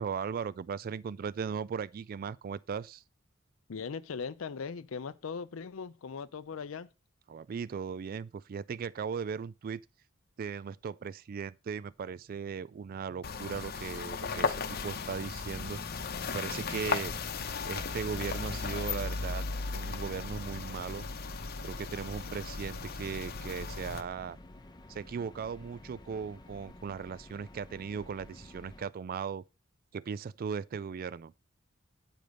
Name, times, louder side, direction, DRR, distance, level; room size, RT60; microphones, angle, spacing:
voice 1, 0.0-3.0 7.3-9.8 10.4-15.8 16.3-17.1 17.7-19.4 19.7-21.1 21.6-24.4 24.9-29.4 29.9-31.3, right 6 dB, 45° right, 0.3 m, -38 dB
voice 2, 3.7-6.9, left 5 dB, 75° left, 0.5 m, -39 dB
sound 1, 13.2-24.0, left 4 dB, 50° left, 0.9 m, -36 dB
sound 2, 23.4-28.8, left 1 dB, 20° left, 0.8 m, -52 dB
9.1 x 5.0 x 5.2 m
head